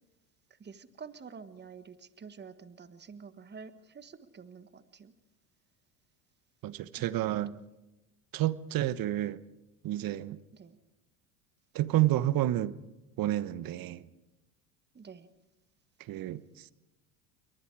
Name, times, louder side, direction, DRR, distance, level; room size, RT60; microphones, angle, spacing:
voice 1, 0.5-5.1 7.0-7.7 10.5-10.8 14.9-15.3, right 5 dB, 20° right, 12 dB, 1.5 m, -49 dB
voice 2, 6.6-7.5 8.3-9.4 9.8-10.4 11.7-12.8 13.2-14.1 16.0-16.7, right 14 dB, 45° right, 16 dB, 1.1 m, -30 dB
28.5 x 22.5 x 4.8 m, 1.0 s
hypercardioid pair, 85°, 47 cm